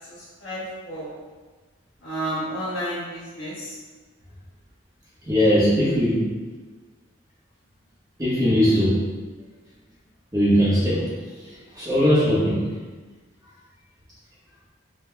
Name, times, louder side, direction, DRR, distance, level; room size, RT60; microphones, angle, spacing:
voice 1, 0.1-1.2 2.0-3.8, right 1 dB, 75° left, -11 dB, 1.1 m, -31 dB
voice 2, 5.2-6.3 8.2-9.1 10.3-11.1 11.7-12.6, equal, 20° right, -8 dB, 1.2 m, -19 dB
5.5 x 3.3 x 2.2 m, 1.3 s
head